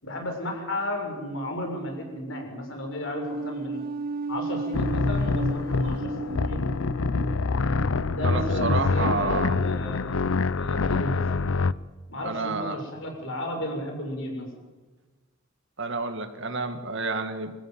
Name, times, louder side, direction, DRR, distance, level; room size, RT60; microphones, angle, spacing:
voice 1, 0.0-3.8 4.3-6.8 8.1-10.2 10.6-11.5 12.1-14.5, left 1 dB, 70° left, 2 dB, 6.7 m, -34 dB
sound 1, 3.1-9.5, right 2 dB, 45° right, 0.9 m, -35 dB
sound 2, 4.7-11.7, left 4 dB, 90° left, 0.6 m, -25 dB
voice 2, 8.2-9.6 12.2-12.8 15.8-17.5, right 3 dB, 65° right, 8 dB, 2.2 m, -29 dB
26.5 x 15.0 x 9.4 m, 1.3 s
head